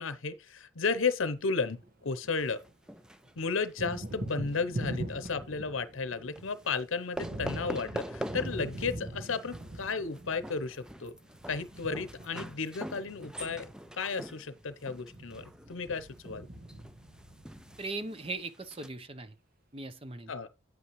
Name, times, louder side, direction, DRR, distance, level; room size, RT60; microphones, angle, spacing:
voice 1, 0.0-2.6 3.4-11.1 11.5-16.5 20.3-20.5, left 4 dB, 85° left, 0.8 m, -33 dB
Thunder, 1.5-2.7 3.0-18.3, right 1 dB, 45° right, 1.3 m, -43 dB
sound 1, 2.4-4.6 4.9-5.3 6.4-6.8 7.2-8.9 9.2-18.9, right 1 dB, 5° right, 0.4 m, -44 dB
voice 2, 17.8-19.3 19.7-20.3, right 2 dB, 30° right, 0.8 m, -39 dB
9.2 x 8.4 x 3.1 m
head